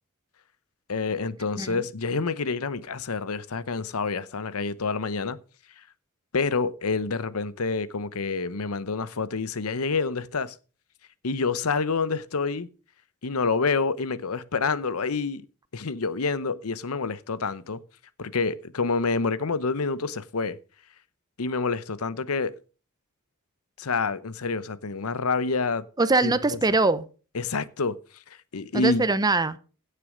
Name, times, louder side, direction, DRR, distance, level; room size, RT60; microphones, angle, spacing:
voice 1, 0.9-5.4 6.3-10.5 11.2-12.7 13.2-15.5 15.7-17.8 18.2-20.6 21.4-22.6 23.8-25.8 26.2-26.6 27.3-28.0 28.3-29.0, left 4 dB, 75° left, 0.8 m, -28 dB
voice 2, 26.0-27.0 28.7-29.6, right 3 dB, 20° right, 0.7 m, -22 dB
16.5 x 6.8 x 5.1 m
head